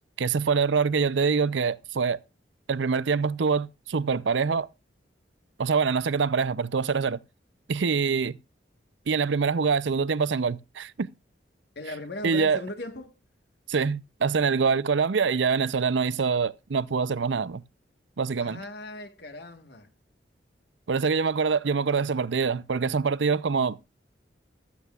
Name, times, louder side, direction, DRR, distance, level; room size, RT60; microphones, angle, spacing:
voice 1, 0.2-2.2 2.7-4.7 5.6-7.2 7.7-8.3 9.1-11.1 12.2-12.6 13.7-17.6 18.2-18.6 20.9-23.8, right 5 dB, 85° right, 0.5 m, -25 dB
voice 2, 11.7-13.2 18.4-19.9, left 2 dB, 65° left, 1.5 m, -38 dB
15.5 x 12.5 x 2.4 m
head